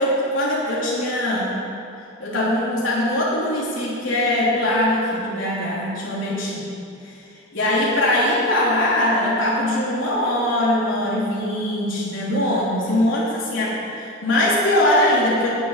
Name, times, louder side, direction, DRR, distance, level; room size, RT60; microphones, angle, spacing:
voice 1, 0.0-1.6 2.2-6.8 7.0-7.2 7.5-15.5, left 1 dB, 85° left, -7 dB, 3.1 m, -21 dB
11.5 x 7.2 x 9.7 m, 2.6 s
head